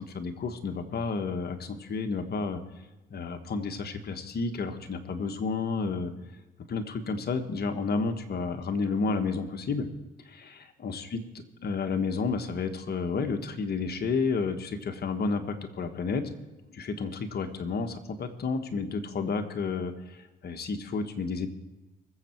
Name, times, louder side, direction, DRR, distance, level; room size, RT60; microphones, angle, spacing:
voice 1, 0.0-2.6 3.1-6.1 6.7-9.9 10.2-11.2 11.6-16.3 16.7-21.5, left 4 dB, 55° left, 6 dB, 1.5 m, -31 dB
21.5 x 7.6 x 4.6 m, 1.1 s
cardioid pair, 90°, 20 cm